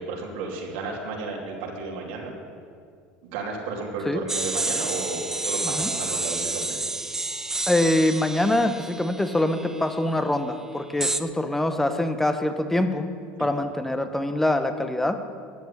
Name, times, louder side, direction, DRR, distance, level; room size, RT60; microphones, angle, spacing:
voice 1, 0.0-2.3 3.2-6.8 13.4-13.5, right 3 dB, 85° right, -1 dB, 2.7 m, -33 dB
sound 1, 4.3-10.0 11.0-11.2, right 2 dB, 10° right, 0.5 m, -30 dB
voice 2, 7.7-13.1 13.4-15.2, left 1 dB, 5° left, 8 dB, 1.0 m, -24 dB
14.0 x 6.2 x 9.6 m, 2.3 s
supercardioid pair, 115°, 5 cm